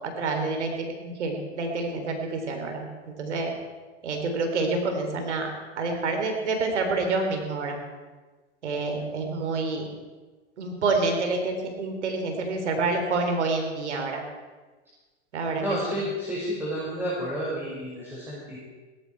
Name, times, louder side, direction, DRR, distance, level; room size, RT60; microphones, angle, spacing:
voice 1, 0.0-2.9 3.2-3.5 4.0-7.8 8.6-9.9 10.6-14.2 15.3-15.6 15.9-16.0, right 3 dB, 85° right, 4 dB, 3.6 m, -28 dB
voice 2, 15.6-18.6, equal, 5° right, -8 dB, 5.5 m, -31 dB
17.0 x 14.5 x 4.6 m, 1.3 s
hypercardioid pair, 110°, 34 cm